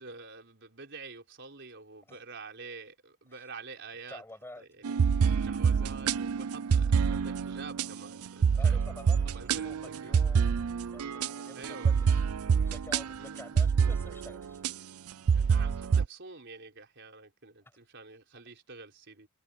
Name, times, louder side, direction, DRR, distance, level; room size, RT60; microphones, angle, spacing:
voice 1, 0.0-4.2 4.6-5.0 5.3-8.8 9.2-10.1 11.5-11.9 13.2-13.4 15.3-19.3, right 4 dB, 55° right, 4.6 m, -47 dB
voice 2, 4.1-4.8 8.5-10.6 10.9-12.2 12.6-14.6 17.6-17.8, left 1 dB, 10° left, 6.8 m, -49 dB
sound 1, 4.8-14.7 15.3-16.1, right 6 dB, 85° right, 0.5 m, -27 dB
head